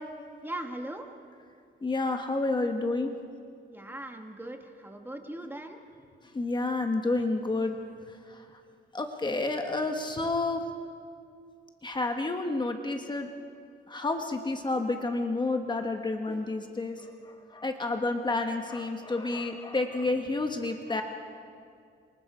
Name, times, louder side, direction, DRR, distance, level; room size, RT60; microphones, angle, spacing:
voice 1, 0.4-1.1 3.7-5.8, right 1 dB, 10° right, 4 dB, 1.4 m, -39 dB
voice 2, 1.8-3.1 6.3-7.7 8.1-8.5 8.9-10.6 11.8-13.3 13.9-21.0, left 2 dB, 25° left, 4 dB, 1.2 m, -30 dB
27.0 x 24.0 x 4.9 m, 2.3 s
wide cardioid pair, 145°, 20 cm